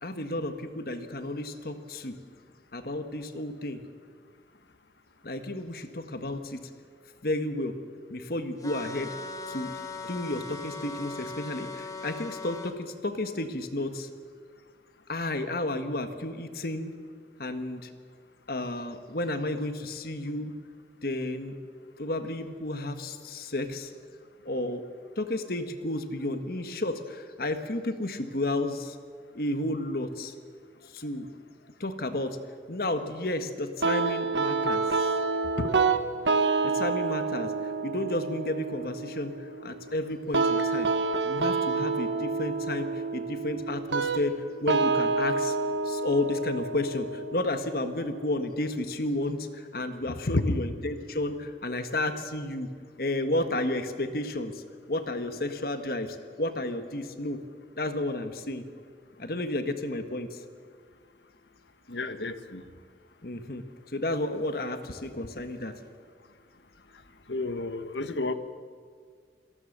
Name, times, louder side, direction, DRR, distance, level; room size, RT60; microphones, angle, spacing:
voice 1, 0.0-2.2 2.7-3.8 5.2-6.7 7.2-7.8 8.1-9.1 9.5-9.7 10.1-14.1 15.1-16.9 17.4-17.9 18.5-20.5 21.0-21.5 22.0-23.9 24.5-24.8 25.2-29.0 29.3-30.3 30.8-31.3 31.8-32.4 32.7-35.1 36.6-40.9 41.2-44.3 44.6-52.7 53.0-54.6 54.9-57.4 57.8-58.6 59.2-60.4 63.2-63.6 63.9-65.8, left 1 dB, 55° left, 1.6 m, -32 dB
sound 1, 8.6-12.7, left 3 dB, 20° left, 1.4 m, -39 dB
sound 2, 33.8-48.8, right 4 dB, 80° right, 1.3 m, -28 dB
voice 2, 61.9-62.6 67.3-68.3, left 2 dB, 75° left, 1.3 m, -30 dB
26.5 x 19.0 x 6.8 m
head